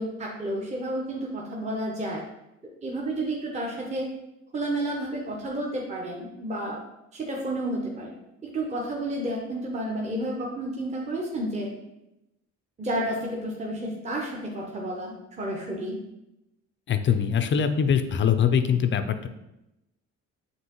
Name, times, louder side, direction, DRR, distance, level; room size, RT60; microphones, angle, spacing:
voice 1, 0.0-2.2 2.8-4.1 4.5-6.8 7.1-8.1 8.5-11.7 12.8-15.9, right 1 dB, 25° right, -2 dB, 0.7 m, -31 dB
voice 2, 16.9-19.3, left 7 dB, 40° left, 9 dB, 0.4 m, -23 dB
5.4 x 2.9 x 3.0 m, 0.89 s
cardioid pair, 90°, 30 cm